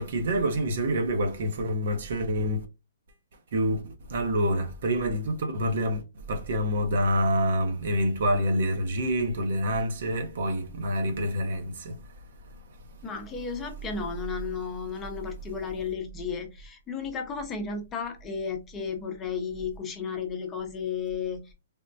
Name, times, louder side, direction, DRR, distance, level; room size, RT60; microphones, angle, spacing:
voice 1, 0.0-2.6 3.5-3.8 4.1-6.0 6.3-12.0, equal, 65° right, 0.8 m, -27 dB
voice 2, 13.0-21.5, left 6 dB, 20° left, 0.7 m, -33 dB
3.5 x 2.1 x 2.6 m
hypercardioid pair, 130°, 0 cm